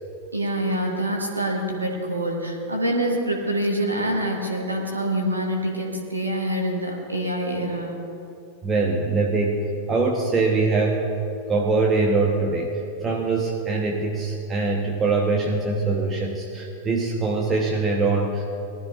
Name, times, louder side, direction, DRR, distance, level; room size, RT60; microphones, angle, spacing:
voice 1, 0.3-8.1, right 1 dB, 80° right, 1 dB, 1.5 m, -26 dB
voice 2, 8.6-9.6 9.9-11.0 11.5-12.7 13.0-18.6, right 3 dB, 20° right, -1 dB, 1.1 m, -23 dB
19.0 x 12.5 x 2.5 m, 2.7 s
figure-of-eight pair, 90°, 0 cm